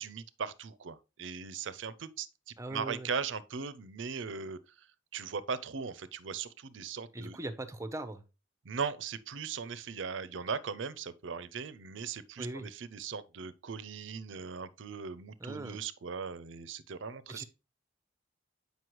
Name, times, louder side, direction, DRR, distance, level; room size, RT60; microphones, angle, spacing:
voice 1, 0.0-4.9 5.1-7.4 8.6-17.4, right 6 dB, 70° right, 0.5 m, -39 dB
voice 2, 2.6-3.1 7.1-8.2 12.4-12.7 15.4-15.8 17.3-17.4, right 1 dB, 15° right, 0.6 m, -40 dB
7.8 x 5.3 x 3.0 m
head